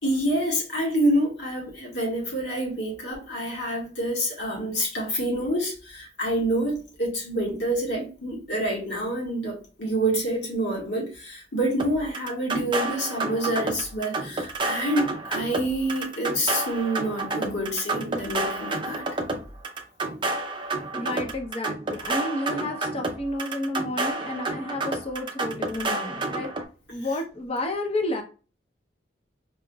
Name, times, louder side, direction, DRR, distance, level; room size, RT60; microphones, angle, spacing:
voice 1, 0.0-19.0, right 1 dB, 70° left, 1.9 m, -27 dB
sound 1, 11.8-26.6, right 2 dB, 25° right, 0.4 m, -30 dB
voice 2, 20.9-26.5 26.9-28.2, left 1 dB, 30° left, 0.8 m, -31 dB
4.9 x 2.9 x 2.3 m
head